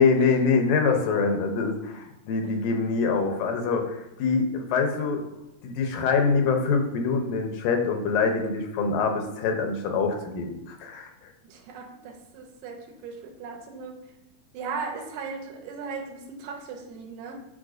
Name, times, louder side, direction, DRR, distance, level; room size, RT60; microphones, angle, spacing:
voice 1, 0.0-5.2 5.6-11.3, left 4 dB, 85° left, 4 dB, 2.4 m, -24 dB
voice 2, 11.4-14.0 14.5-17.4, right 5 dB, 80° right, 3 dB, 2.4 m, -37 dB
9.7 x 4.2 x 2.6 m, 0.90 s
omnidirectional pair, 3.9 m